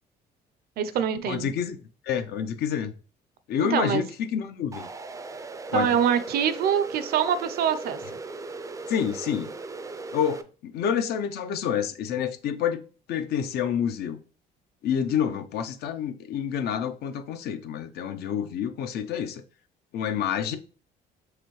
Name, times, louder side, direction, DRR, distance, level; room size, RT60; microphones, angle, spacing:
voice 1, 0.8-1.5 3.7-4.0 5.7-8.0, right 8 dB, 65° right, 0.5 m, -24 dB
voice 2, 1.3-1.8 2.0-2.9 3.5-4.9 5.7-6.0 8.9-9.5 10.1-12.8 13.1-14.2 14.8-19.4 19.9-20.6, left 8 dB, 70° left, 0.6 m, -28 dB
sound 1, 4.7-10.4, right 3 dB, 20° right, 0.4 m, -38 dB
4.9 x 3.4 x 3.1 m
cardioid pair, 110°, 17 cm